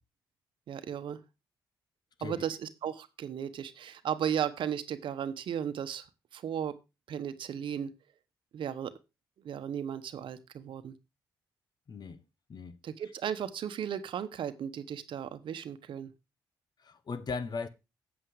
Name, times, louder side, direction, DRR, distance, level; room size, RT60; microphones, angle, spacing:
voice 1, 0.7-1.2 2.2-6.1 6.3-6.7 7.1-7.9 8.5-8.9 9.4-11.0 12.8-16.1, right 8 dB, 65° right, 1.0 m, -35 dB
voice 2, 11.9-12.2 12.5-12.8 16.8-17.7, left 4 dB, 50° left, 1.2 m, -38 dB
8.3 x 7.9 x 4.7 m
supercardioid pair, 55°, 9 cm